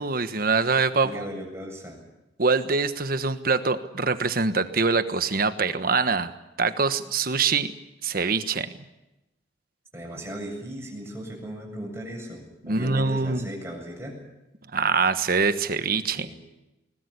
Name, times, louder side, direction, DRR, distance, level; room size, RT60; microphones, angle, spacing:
voice 1, 0.0-1.3 2.4-7.7 8.0-8.7 12.6-13.5 14.7-16.3, right 4 dB, 55° right, 11 dB, 1.3 m, -24 dB
voice 2, 1.0-2.0 9.9-14.2 16.1-16.3, equal, 15° right, 0 dB, 7.7 m, -37 dB
21.5 x 20.0 x 8.4 m, 0.94 s
head